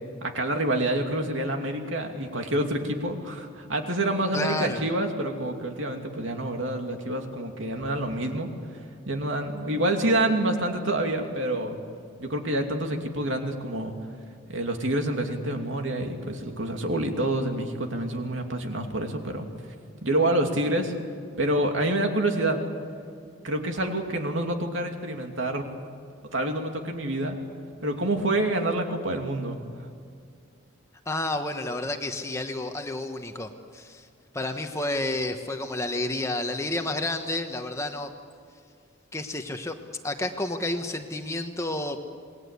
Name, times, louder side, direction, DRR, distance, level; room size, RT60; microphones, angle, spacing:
voice 1, 0.2-8.5 9.1-11.8 12.2-13.9 14.5-19.5 20.0-20.9 21.4-22.7 23.4-25.7 26.3-27.4 27.8-29.6, right 1 dB, 65° right, 4 dB, 2.7 m, -27 dB
voice 2, 4.3-4.8 31.1-34.1 34.3-38.1 39.1-39.7 40.0-42.0, left 2 dB, 15° left, 5 dB, 1.2 m, -30 dB
27.5 x 20.5 x 8.4 m, 2.3 s
head